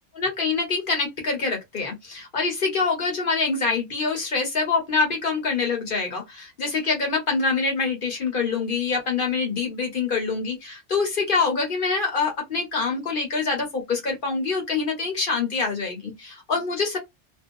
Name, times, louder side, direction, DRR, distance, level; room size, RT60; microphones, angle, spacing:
voice 1, 0.1-17.0, left 4 dB, 50° left, 1.3 m, -25 dB
2.5 x 2.4 x 2.6 m
omnidirectional pair, 1.2 m